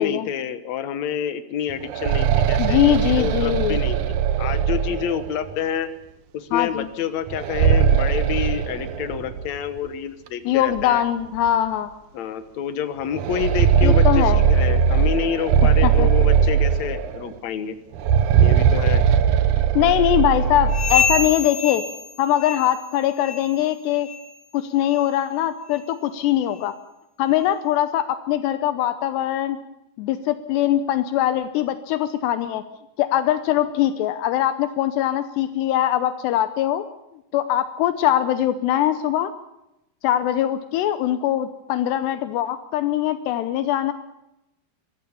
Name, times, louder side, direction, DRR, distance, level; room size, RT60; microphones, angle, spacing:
voice 1, 0.0-5.9 6.3-11.0 12.1-17.8 18.4-19.0, left 9 dB, 65° left, 11 dB, 1.8 m, -28 dB
sound 1, 1.7-5.5 7.3-9.5 9.8-9.9 10.8-10.9 11.4-11.5 13.1-17.3 17.9-21.3, right 8 dB, 70° right, 1.9 m, -19 dB
voice 2, 2.6-3.8 6.5-6.9 10.5-11.9 13.8-14.4 15.8-16.1 19.8-21.8 22.2-24.1 24.5-26.8 27.2-29.6 30.0-32.6 33.0-36.9 37.3-39.3 40.0-43.9, left 12 dB, 80° left, 11 dB, 3.0 m, -22 dB
sound 2, 20.7-22.9 23.2-23.6 24.0-24.3 24.9-25.0 25.7-25.8 26.5-26.6, left 5 dB, 45° left, 3.3 m, -26 dB
23.5 x 16.0 x 7.0 m, 0.90 s
omnidirectional pair, 4.9 m